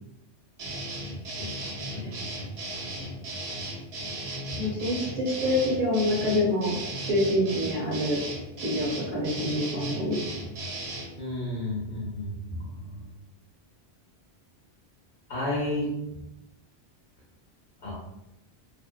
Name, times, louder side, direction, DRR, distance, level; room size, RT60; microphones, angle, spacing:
sound 1, 0.6-11.1, right 1 dB, 75° right, 0.9 m, -36 dB
voice 1, 1.9-2.2 4.5-4.6 11.2-13.1 15.3-15.9 17.8-17.9, left 1 dB, 90° left, -6 dB, 1.1 m, -32 dB
voice 2, 4.6-8.2 8.6-10.2, left 1 dB, 40° right, -8 dB, 0.8 m, -26 dB
2.6 x 2.1 x 2.2 m, 0.90 s
omnidirectional pair, 1.1 m